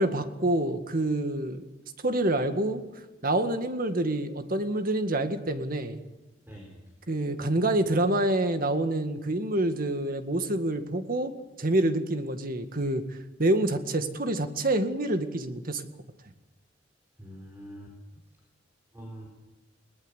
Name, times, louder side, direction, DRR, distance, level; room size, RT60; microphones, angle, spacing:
voice 1, 0.0-1.6 2.0-2.8 3.2-6.0 7.1-11.3 11.6-13.0 13.4-15.9, right 1 dB, 50° right, 8 dB, 1.9 m, -27 dB
voice 2, 6.5-6.8 17.2-18.2 18.9-19.3, equal, 10° right, 0 dB, 4.1 m, -44 dB
21.0 x 19.5 x 8.2 m, 1.1 s
head